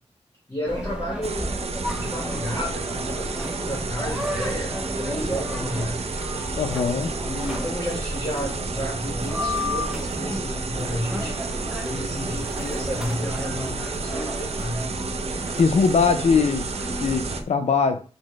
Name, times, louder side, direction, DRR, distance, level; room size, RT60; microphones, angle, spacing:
voice 1, 0.5-1.6 1.9-6.1 7.2-11.5 11.8-14.9, left 1 dB, 25° left, 0.9 m, -32 dB
sound 1, 0.7-17.4, equal, 10° right, 0.5 m, -32 dB
sound 2, 1.2-17.4, right 4 dB, 65° right, 0.4 m, -32 dB
voice 2, 6.6-7.1 15.5-16.7 17.0-18.0, left 5 dB, 75° left, 0.4 m, -21 dB
3.9 x 2.1 x 3.1 m
wide cardioid pair, 90°, 11 cm